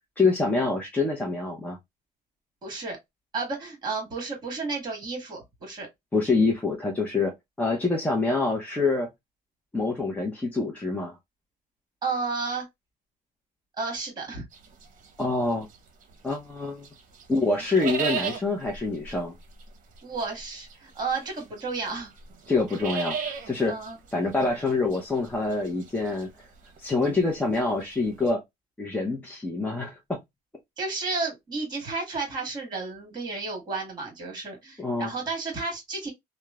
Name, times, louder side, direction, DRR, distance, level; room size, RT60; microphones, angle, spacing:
voice 1, 0.2-1.8 6.1-9.1 9.7-11.2 15.2-15.7 16.2-16.9 17.3-19.3 22.5-23.8 24.1-26.5 26.8-28.4 28.8-30.2 34.8-35.1, left 3 dB, 10° left, 0.6 m, -26 dB
voice 2, 2.6-3.0 3.3-5.9 12.0-12.7 13.8-14.5 20.0-22.1 23.7-24.0 30.8-36.1, right 4 dB, 25° right, 1.5 m, -32 dB
sound 1, 14.5-16.5 16.8-28.3, right 6 dB, 50° right, 0.8 m, -36 dB
2.9 x 2.1 x 2.3 m
cardioid pair, 110°, 17 cm